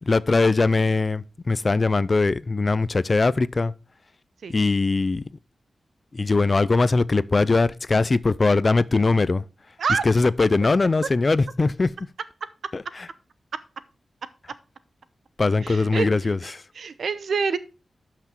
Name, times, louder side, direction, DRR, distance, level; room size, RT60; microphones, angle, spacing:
voice 1, 0.0-3.7 4.5-5.3 6.1-9.4 10.0-11.9 12.7-13.1 15.4-16.6, left 3 dB, 30° left, 0.4 m, -21 dB
voice 2, 15.6-16.1 16.4-17.6, right 5 dB, 70° right, 0.8 m, -26 dB
12.0 x 5.9 x 4.4 m
wide cardioid pair, 165°, 0 cm